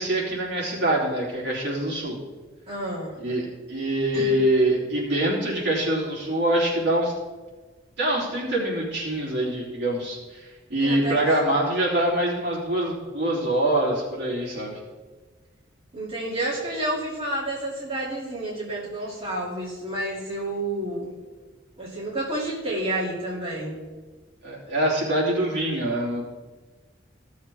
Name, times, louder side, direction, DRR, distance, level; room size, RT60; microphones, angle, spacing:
voice 1, 0.0-2.2 3.2-7.1 8.0-14.8 24.4-26.2, right 1 dB, 60° right, -5 dB, 3.2 m, -24 dB
voice 2, 2.7-3.2 4.1-4.3 10.8-11.2 15.9-21.1 21.8-23.8, right 1 dB, 30° right, -7 dB, 2.6 m, -30 dB
15.5 x 7.2 x 3.5 m, 1.3 s
head